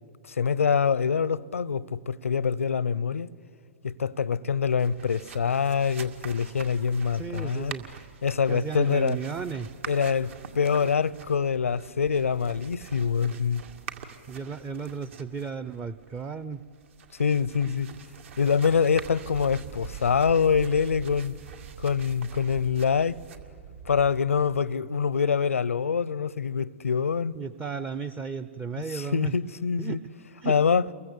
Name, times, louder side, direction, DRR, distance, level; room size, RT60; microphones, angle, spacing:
voice 1, 0.3-3.3 3.8-7.7 8.2-9.2 9.9-13.6 17.2-17.9 18.4-21.3 21.8-23.2 23.9-27.3 28.9-30.0 30.4-30.8, left 6 dB, 90° left, 0.7 m, -25 dB
sound 1, 4.6-24.6, right 7 dB, 65° right, 2.3 m, -45 dB
voice 2, 7.1-7.9 8.5-9.7 14.3-16.6 27.4-29.3 29.8-30.0 30.4-30.6, right 6 dB, 15° right, 0.7 m, -34 dB
29.0 x 22.5 x 8.3 m
hypercardioid pair, 125°, 7 cm